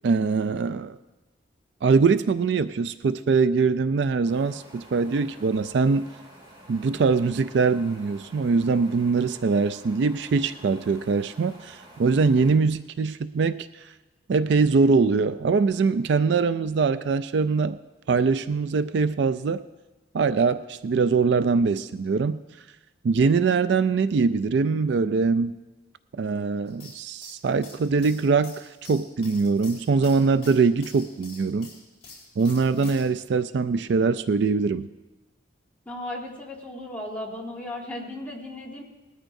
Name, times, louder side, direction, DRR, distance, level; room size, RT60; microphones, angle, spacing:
voice 1, 0.0-1.0 1.8-6.1 6.7-13.7 14.3-17.8 18.1-19.6 20.1-22.4 23.0-25.6 26.1-31.7 32.4-34.9, right 4 dB, 65° right, 13 dB, 0.4 m, -22 dB
sound 1, 4.3-12.5, right 1 dB, 25° right, 3.3 m, -49 dB
sound 2, 26.7-33.1, left 3 dB, 30° left, 4.1 m, -47 dB
voice 2, 35.9-38.8, left 1 dB, 10° left, -3 dB, 1.8 m, -36 dB
19.5 x 13.5 x 2.7 m, 1.2 s
head